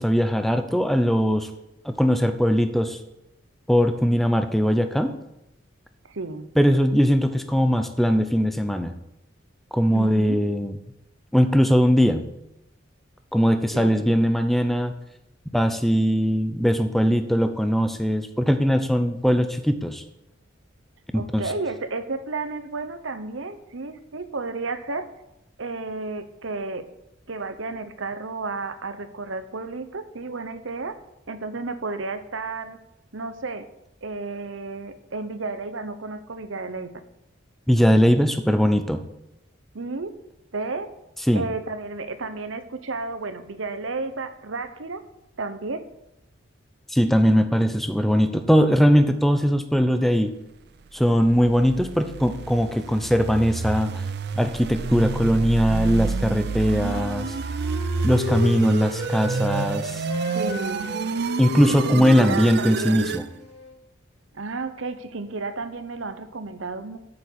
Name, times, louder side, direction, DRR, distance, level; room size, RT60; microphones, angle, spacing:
voice 1, 0.0-1.5 1.8-3.0 3.7-5.1 6.6-8.9 9.7-10.7 11.3-12.2 13.3-14.9 15.5-20.0 21.1-21.4 37.7-39.0 41.3-41.4 46.9-50.3 50.9-53.9 54.4-57.3 58.0-60.1 61.4-63.2, equal, ahead, 8 dB, 0.6 m, -20 dB
voice 2, 6.0-6.5 9.9-10.4 13.7-14.2 21.1-25.1 25.6-26.9 27.3-31.0 31.3-32.8 33.1-33.7 34.0-36.9 39.7-40.2 40.5-40.9 41.3-45.0 45.4-45.9 60.3-61.1 61.7-63.0 64.3-67.0, right 3 dB, 75° right, 10 dB, 1.0 m, -32 dB
sound 1, 51.1-63.3, right 4 dB, 50° right, 0.4 m, -29 dB
Wind instrument woodwind instrument, 56.4-59.7 60.0-63.8, left 1 dB, 35° left, 3.4 m, -35 dB
8.6 x 7.1 x 8.1 m, 0.87 s
head